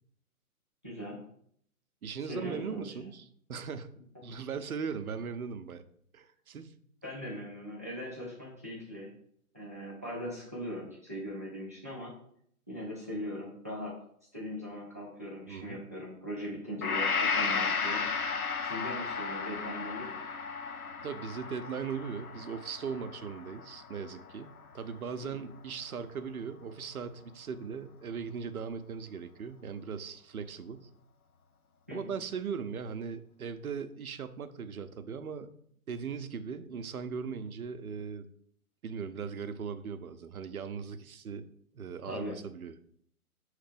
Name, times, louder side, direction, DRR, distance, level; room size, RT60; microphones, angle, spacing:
voice 1, 0.8-1.2 2.3-2.9 7.0-9.1 9.5-12.1 12.7-13.9 14.3-18.0 18.6-20.2 25.2-25.3 31.9-32.0 42.1-42.3, equal, 10° right, -4 dB, 0.4 m, -40 dB
voice 2, 2.0-3.9 4.2-5.8 6.1-6.7 15.5-15.8 21.0-30.9 31.9-35.5 35.9-38.3 38.8-41.5 41.7-42.7, right 6 dB, 70° right, 11 dB, 0.7 m, -39 dB
Gong, 16.8-24.8, left 5 dB, 75° left, 0.9 m, -34 dB
5.7 x 3.2 x 5.1 m, 0.65 s
figure-of-eight pair, 130°, 44 cm